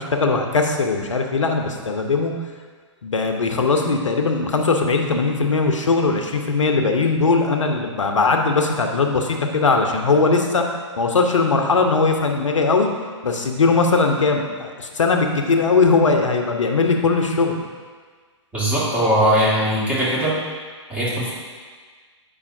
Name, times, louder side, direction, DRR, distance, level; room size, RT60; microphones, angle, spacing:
voice 1, 0.0-2.3 3.0-10.6 11.0-12.9 13.2-17.6, left 4 dB, 80° left, 4 dB, 0.9 m, -19 dB
voice 2, 18.5-20.3 20.9-21.3, equal, 10° right, -8 dB, 2.0 m, -20 dB
8.4 x 5.5 x 2.7 m, 1.6 s
figure-of-eight pair, 125°, 16 cm